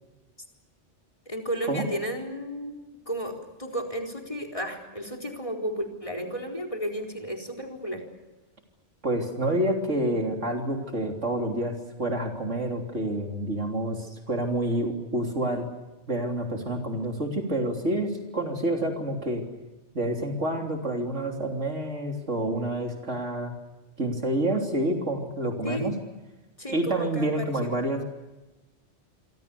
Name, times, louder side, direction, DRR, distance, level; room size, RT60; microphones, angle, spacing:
voice 1, 1.3-2.8 3.1-8.0 25.6-25.9 26.6-27.7, equal, 25° left, 1 dB, 4.3 m, -33 dB
voice 2, 9.0-15.7 16.1-19.4 19.9-23.5 24.0-26.0 26.7-28.0, right 1 dB, 90° right, 2 dB, 3.8 m, -28 dB
27.0 x 25.5 x 7.0 m, 1.1 s
omnidirectional pair, 1.2 m